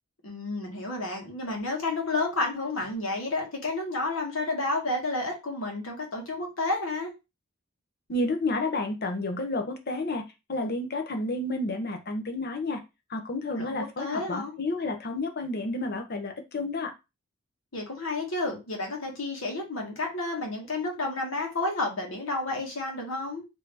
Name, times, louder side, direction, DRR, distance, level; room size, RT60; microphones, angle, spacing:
voice 1, 0.2-7.1 13.5-14.6 17.7-23.5, left 2 dB, 80° left, 1 dB, 1.3 m, -31 dB
voice 2, 8.1-10.2 10.5-12.8 13.1-16.9, left 2 dB, 50° left, 5 dB, 0.7 m, -30 dB
3.6 x 2.7 x 3.3 m, 0.25 s
head